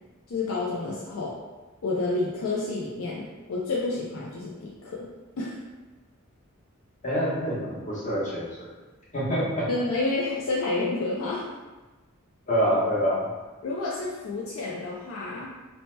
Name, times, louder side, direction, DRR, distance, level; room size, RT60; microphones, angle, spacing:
voice 1, 0.3-1.4 1.8-5.1 5.4-5.6 9.7-11.4 13.6-15.5, left 3 dB, 70° left, -4 dB, 0.4 m, -29 dB
voice 2, 7.0-8.7 9.1-9.7 12.5-13.3, equal, 35° left, -8 dB, 1.0 m, -26 dB
2.8 x 2.1 x 3.1 m, 1.2 s
head